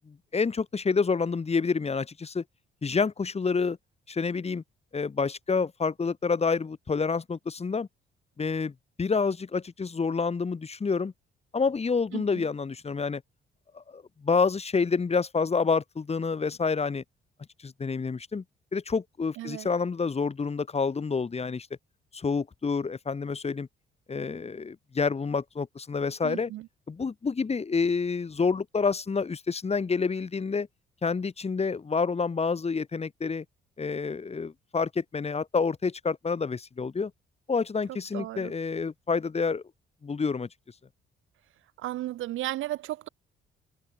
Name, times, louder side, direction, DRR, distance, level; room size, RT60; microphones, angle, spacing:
voice 1, 0.1-2.4 2.8-3.8 4.1-4.6 4.9-7.9 8.4-11.1 11.5-13.2 13.7-17.0 17.6-18.4 18.7-21.7 22.1-23.7 24.1-26.5 26.9-30.7 31.0-33.4 33.8-37.1 37.5-39.6 40.0-40.5, left 5 dB, 30° left, 3.0 m, -28 dB
voice 2, 12.1-12.5 19.4-19.7 26.2-26.7 37.9-38.5 41.8-43.1, right 15 dB, 80° right, 1.1 m, -35 dB
cardioid pair, 90°, 20 cm